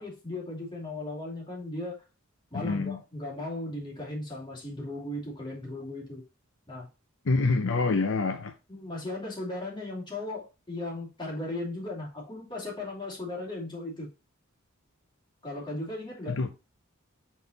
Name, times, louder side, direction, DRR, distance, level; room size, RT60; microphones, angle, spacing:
voice 1, 0.0-2.0 2.5-6.2 6.7-6.9 7.6-7.7 8.7-14.1 15.4-16.4, left 2 dB, 20° left, 2.7 m, -37 dB
voice 2, 2.5-3.0 7.3-8.5 16.3-16.5, left 3 dB, 65° left, 0.6 m, -26 dB
5.7 x 4.2 x 3.9 m
head